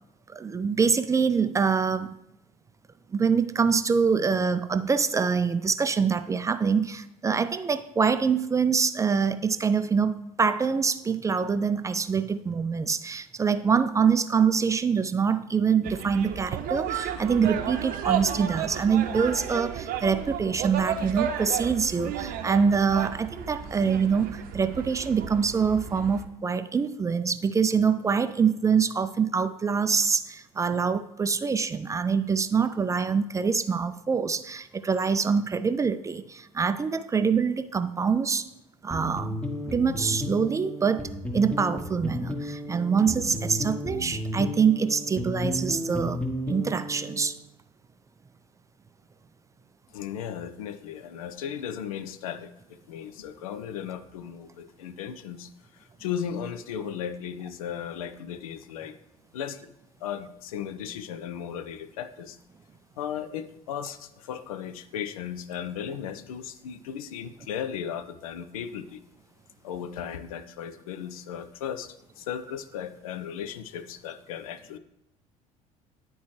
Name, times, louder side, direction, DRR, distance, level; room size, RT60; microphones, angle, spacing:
voice 1, 0.3-2.1 3.1-38.5 38.8-39.3 39.7-46.2 46.5-47.4, right 6 dB, 15° right, 11 dB, 0.3 m, -25 dB
sound 1, 15.8-26.2, right 9 dB, 50° right, 0.7 m, -33 dB
sound 2, 38.9-47.3, left 1 dB, 5° left, 0.9 m, -33 dB
voice 2, 49.9-59.0 59.3-59.7 60.0-62.4 63.0-69.0 69.6-74.8, left 8 dB, 75° left, 13 dB, 0.4 m, -36 dB
10.0 x 4.4 x 3.1 m, 0.85 s
figure-of-eight pair, 60°, 18 cm